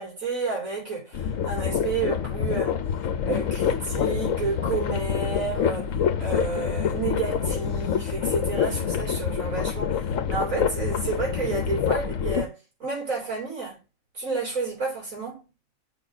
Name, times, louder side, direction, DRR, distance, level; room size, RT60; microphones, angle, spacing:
voice 1, 0.0-2.8 3.3-13.8 14.1-15.4, right 4 dB, 85° right, 4.1 m, -31 dB
sound 1, 1.1-12.5, left 8 dB, 75° left, 1.2 m, -26 dB
6.0 x 4.3 x 5.0 m
omnidirectional pair, 1.4 m